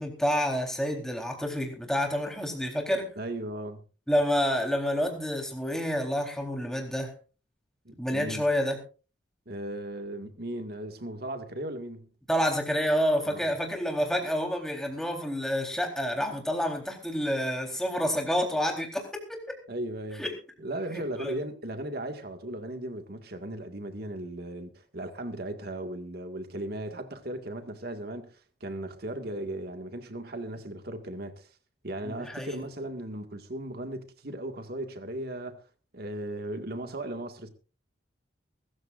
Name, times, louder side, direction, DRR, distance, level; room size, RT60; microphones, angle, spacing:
voice 1, 0.0-3.1 4.1-7.1 8.0-8.8 12.3-19.6 20.2-20.4 20.9-21.3 32.0-32.6, equal, 5° left, 3.9 m, -28 dB
voice 2, 3.2-3.8 7.9-8.4 9.5-12.1 13.3-13.5 19.7-20.2 20.6-28.3 28.6-31.5 31.8-35.6 35.9-37.5, right 1 dB, 60° right, 2.0 m, -37 dB
23.0 x 14.0 x 2.6 m
head